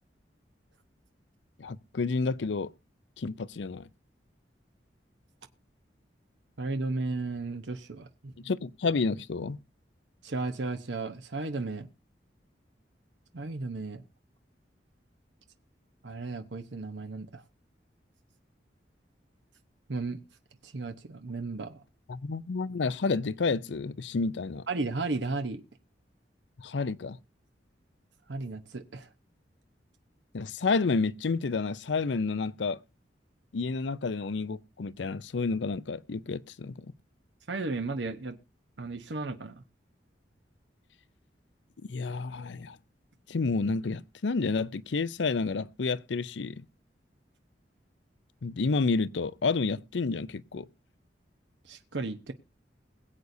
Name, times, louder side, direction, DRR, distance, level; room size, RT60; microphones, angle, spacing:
voice 1, 1.6-2.7 3.2-3.9 8.4-9.6 22.1-24.7 26.6-27.2 30.3-32.8 33.5-36.9 41.9-42.8 43.3-46.7 48.4-50.7, left 4 dB, 85° left, 0.5 m, -30 dB
voice 2, 6.6-8.5 10.2-11.9 13.3-14.0 16.0-17.4 19.9-20.2 20.6-21.8 24.7-25.6 28.3-29.1 37.5-38.4 38.8-39.6 51.6-52.3, right 3 dB, 85° right, 0.9 m, -34 dB
21.5 x 8.1 x 2.7 m
head